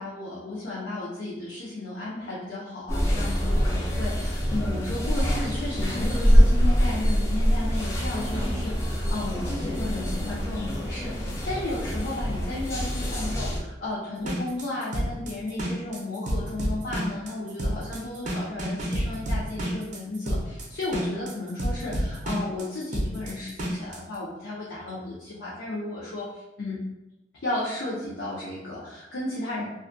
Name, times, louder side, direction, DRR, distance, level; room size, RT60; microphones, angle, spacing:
voice 1, 0.0-26.8 27.4-29.7, left 2 dB, 70° left, -7 dB, 0.5 m, -34 dB
sound 1, 2.9-13.6, equal, 15° left, 0.4 m, -24 dB
sound 2, 14.2-24.0, equal, 45° right, 0.5 m, -29 dB
2.3 x 2.1 x 2.5 m, 0.98 s
head